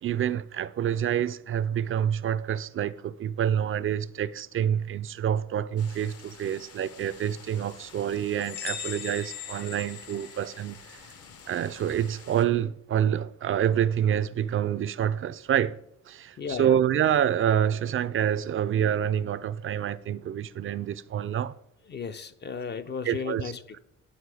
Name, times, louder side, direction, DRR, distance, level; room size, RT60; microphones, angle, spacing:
voice 1, 0.0-11.0 11.5-15.8 16.1-21.6 23.1-23.4, right 9 dB, 45° right, 0.4 m, -27 dB
sound 1, 5.8-12.5, left 6 dB, 50° left, 0.9 m, -50 dB
sound 2, 8.4-11.0, left 8 dB, 80° left, 0.9 m, -39 dB
voice 2, 16.4-16.8 21.9-23.8, left 6 dB, 35° left, 0.5 m, -35 dB
10.0 x 4.1 x 4.8 m
cardioid pair, 90°, 30 cm